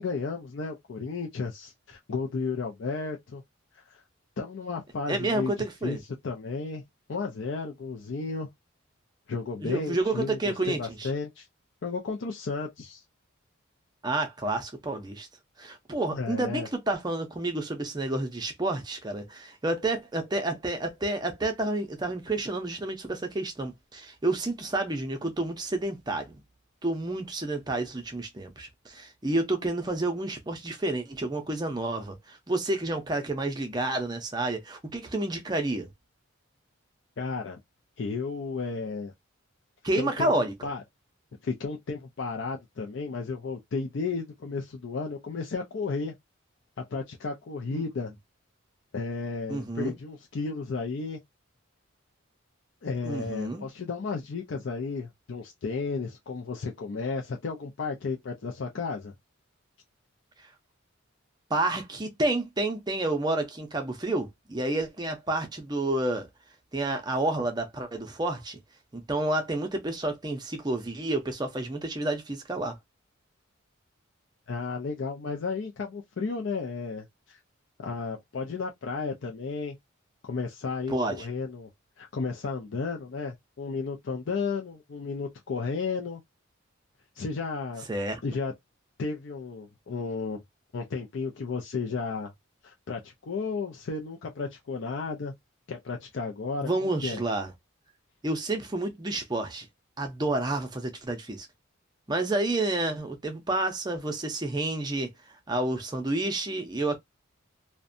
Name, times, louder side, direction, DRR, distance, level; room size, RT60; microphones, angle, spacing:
voice 1, 0.0-3.4 3.7-4.0 4.4-5.5 5.8-6.0 6.2-6.8 7.1-8.5 9.3-11.5 11.8-13.0 16.1-16.7 37.2-37.6 38.0-39.1 40.0-40.3 40.6-40.8 41.4-46.1 46.8-48.1 48.9-51.2 52.8-59.1 74.5-77.4 77.8-79.8 80.2-81.7 82.0-86.2 87.2-87.9 88.2-88.5 89.0-90.4 90.7-92.3 92.6-95.3 95.7-97.2, left 4 dB, 60° left, 0.4 m, -33 dB
voice 2, 5.1-6.0 9.6-11.1 14.0-15.3 15.6-26.4 26.8-35.9 39.8-40.5 47.7-47.8 49.5-49.9 53.0-53.7 60.4-60.5 61.5-66.3 66.7-68.6 68.9-72.8 80.9-81.3 87.9-88.2 96.6-97.5 98.2-99.7 100.0-101.5 102.1-107.0, right 2 dB, 20° right, 0.5 m, -30 dB
2.6 x 2.1 x 2.5 m
head